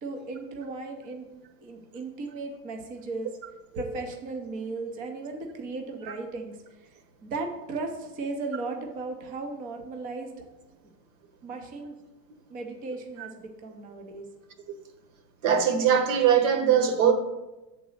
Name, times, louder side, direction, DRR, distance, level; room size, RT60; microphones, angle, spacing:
voice 1, 0.0-1.3 1.6-3.3 3.7-6.9 7.2-10.3 11.4-12.0 12.5-14.3, right 3 dB, 20° right, 0.5 m, -36 dB
voice 2, 15.4-17.1, right 8 dB, 50° right, 1.2 m, -21 dB
7.7 x 4.0 x 6.3 m
supercardioid pair, 160°, 48 cm